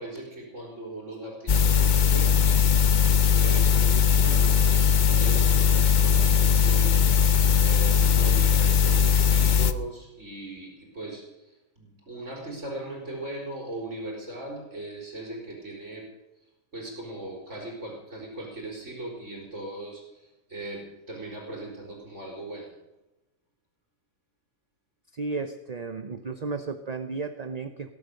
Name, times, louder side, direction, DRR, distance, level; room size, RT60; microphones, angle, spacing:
voice 1, 0.0-3.0 3.3-7.3 7.6-11.2 11.8-16.0 16.7-20.0 20.5-22.7, right 1 dB, 55° right, -1 dB, 4.2 m, -39 dB
sound 1, 1.5-9.7, left 7 dB, 45° left, 0.6 m, -20 dB
voice 2, 25.1-27.9, right 4 dB, 40° right, 9 dB, 0.6 m, -33 dB
19.0 x 11.0 x 6.5 m, 0.99 s
omnidirectional pair, 1.5 m